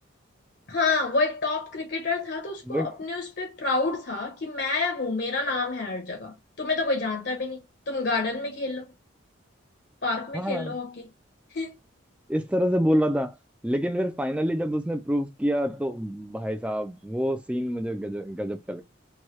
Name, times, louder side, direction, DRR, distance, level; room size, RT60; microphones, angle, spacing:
voice 1, 0.7-7.6 7.9-8.9 10.0-11.1 11.5-11.7, left 3 dB, 55° left, 0.8 m, -28 dB
voice 2, 10.3-10.8 12.3-13.3 13.6-18.8, equal, 5° right, 0.3 m, -27 dB
2.9 x 2.3 x 3.1 m
head